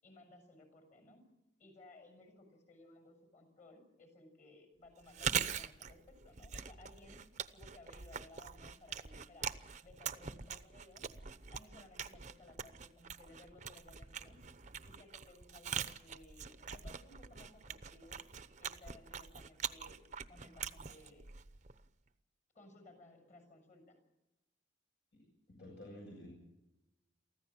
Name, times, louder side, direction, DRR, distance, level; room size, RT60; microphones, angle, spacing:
voice 1, 0.0-1.2 1.6-7.2 7.5-9.5 9.8-11.1 11.5-14.4 14.8-18.2 18.6-20.0 20.3-21.3 22.5-24.0, left 2 dB, 40° left, 6 dB, 6.7 m, -60 dB
Chewing mastication, 5.0-21.9, right 7 dB, 40° right, 0.8 m, -43 dB
voice 2, 25.1-26.3, left 1 dB, 65° left, -2 dB, 7.4 m, -52 dB
24.0 x 15.0 x 7.4 m, 0.92 s
head